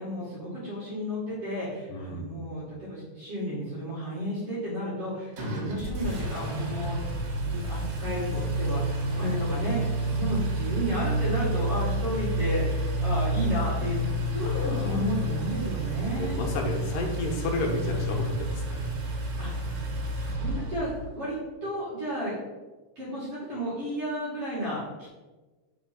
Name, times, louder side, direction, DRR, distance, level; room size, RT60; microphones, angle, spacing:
voice 1, 0.0-7.0 7.4-14.0 14.3-16.4 19.4-19.7 20.1-22.3 23.0-25.1, equal, 45° right, -9 dB, 2.6 m, -32 dB
voice 2, 1.9-2.3 5.4-5.8 14.4-15.0 16.1-18.8, left 2 dB, 80° left, 2 dB, 2.7 m, -32 dB
Engine, 5.4-21.1, right 1 dB, 75° right, 2.8 m, -30 dB
5.6 x 4.3 x 5.8 m, 1.2 s
omnidirectional pair, 3.9 m